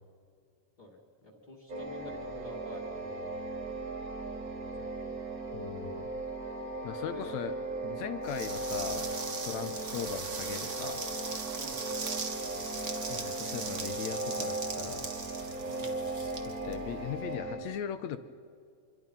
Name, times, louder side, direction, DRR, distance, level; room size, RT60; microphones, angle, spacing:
voice 1, 0.8-3.3 4.8-5.2 7.1-7.5 11.6-11.8 15.7-16.0, left 1 dB, 30° left, 0 dB, 2.9 m, -47 dB
sound 1, 1.7-17.6, right 2 dB, 30° right, 1.9 m, -37 dB
voice 2, 5.5-6.1 6.8-7.5 7.8-9.1 9.4-11.0 13.1-15.1 16.5-18.2, left 9 dB, 70° left, 11 dB, 2.0 m, -39 dB
sound 2, 8.3-17.2, right 4 dB, 65° right, 0.7 m, -40 dB
27.0 x 23.0 x 5.6 m, 2.2 s
omnidirectional pair, 3.8 m